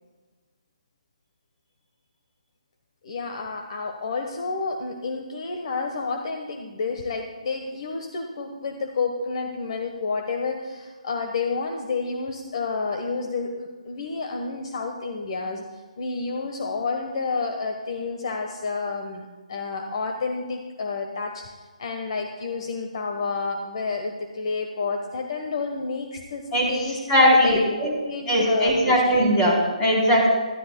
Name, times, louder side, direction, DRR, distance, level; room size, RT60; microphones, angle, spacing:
voice 1, 3.0-15.6 16.0-21.4 21.8-29.0, left 4 dB, 50° left, 4 dB, 1.1 m, -30 dB
voice 2, 26.5-27.9 28.3-30.3, equal, 15° left, -4 dB, 3.7 m, -20 dB
18.5 x 13.0 x 2.2 m, 1.3 s
figure-of-eight pair, 150°, 4 cm